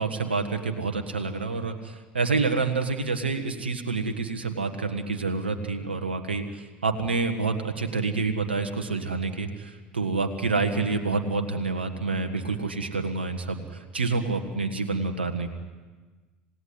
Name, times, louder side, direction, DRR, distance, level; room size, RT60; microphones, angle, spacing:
voice 1, 0.0-15.5, right 4 dB, 80° right, 7 dB, 1.6 m, -28 dB
27.5 x 17.5 x 9.8 m, 1.3 s
figure-of-eight pair, 70°, 6 cm